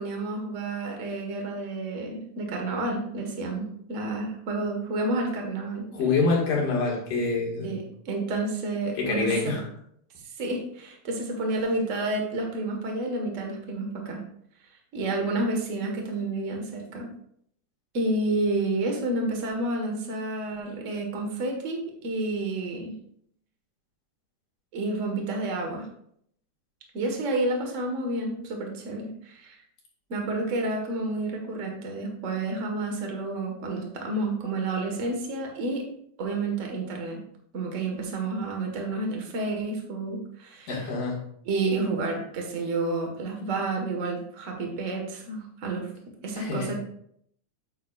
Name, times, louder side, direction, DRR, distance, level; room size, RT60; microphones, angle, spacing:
voice 1, 0.0-5.9 7.6-9.5 10.4-14.2 14.9-17.1 17.9-23.0 24.7-25.9 26.9-29.6 30.1-35.8 36.2-37.2 37.5-40.8 41.4-45.9 46.2-46.8, right 2 dB, 45° right, 2 dB, 1.0 m, -30 dB
voice 2, 5.9-7.7 9.0-9.6 40.7-41.2 46.3-46.8, left 4 dB, 85° left, -3 dB, 3.6 m, -26 dB
9.1 x 7.9 x 2.4 m, 0.68 s
omnidirectional pair, 3.7 m